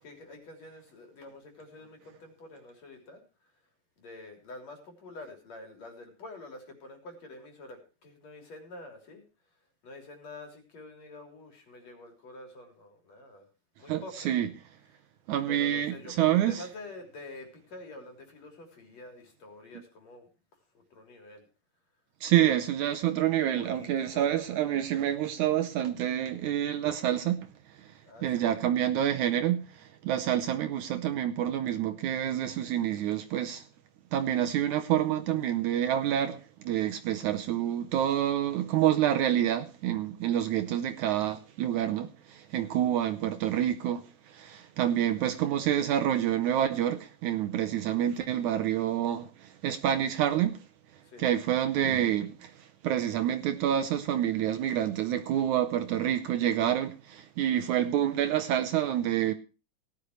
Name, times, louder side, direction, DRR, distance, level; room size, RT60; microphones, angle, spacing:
voice 1, 0.0-3.5 4.0-9.2 9.8-13.5 13.8-14.3 15.5-20.3 20.7-21.5 22.4-22.5 23.4-24.5 28.0-28.6 44.9-45.3 51.0-51.4, left 2 dB, 50° left, 4.5 m, -47 dB
voice 2, 13.9-14.5 15.3-16.6 22.2-27.5 27.8-27.9 28.2-33.6 34.1-50.6 51.2-59.3, right 11 dB, 70° right, 2.0 m, -28 dB
18.0 x 11.5 x 3.1 m
omnidirectional pair, 4.0 m